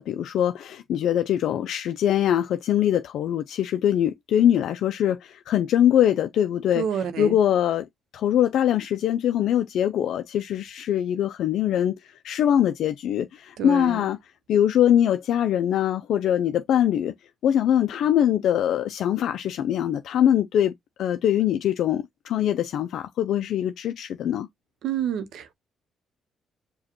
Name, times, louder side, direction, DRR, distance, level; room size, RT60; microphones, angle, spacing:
voice 1, 0.0-7.9 8.1-14.2 14.5-17.1 17.4-20.7 21.0-24.5, left 10 dB, 75° left, 0.3 m, -23 dB
voice 2, 6.7-7.4 13.6-14.0 24.8-25.5, right 8 dB, 80° right, 0.7 m, -28 dB
4.9 x 2.2 x 2.9 m
cardioid pair, 90°, 0 cm